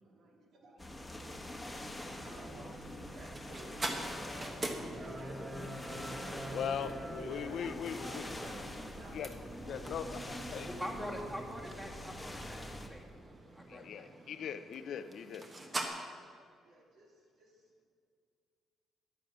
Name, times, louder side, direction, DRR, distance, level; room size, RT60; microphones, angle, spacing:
voice 1, 0.0-6.6 7.3-9.2 16.6-17.9, right 2 dB, 70° right, 2.4 m, -56 dB
sound 1, 0.8-12.9, left 1 dB, 10° left, 1.3 m, -45 dB
sound 2, 0.8-15.9, right 2 dB, 30° right, 1.4 m, -45 dB
voice 2, 6.5-8.3 9.1-9.3 9.6-10.7 13.7-15.5, left 8 dB, 70° left, 0.5 m, -40 dB
Breathing, 7.1-13.2, left 2 dB, 25° left, 1.0 m, -56 dB
voice 3, 10.6-12.6 12.9-14.1, equal, 10° right, 2.1 m, -44 dB
10.5 x 8.7 x 6.1 m
cardioid pair, 90°, 0 cm